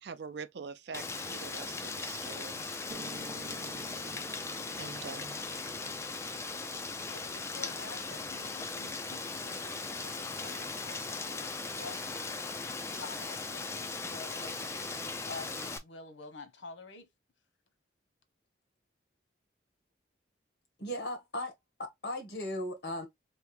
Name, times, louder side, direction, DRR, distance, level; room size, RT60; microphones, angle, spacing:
voice 1, 0.0-2.7 4.7-5.7, right 5 dB, 60° right, 0.4 m, -45 dB
Rain, 0.9-15.8, left 3 dB, 15° left, 0.3 m, -38 dB
Piano, 2.9-11.0, right 2 dB, 40° right, 0.8 m, -52 dB
voice 2, 7.1-12.6 12.9-17.1, left 3 dB, 80° left, 0.9 m, -49 dB
voice 3, 20.8-21.5 21.8-23.1, left 1 dB, 55° left, 1.3 m, -37 dB
3.4 x 2.8 x 3.2 m
head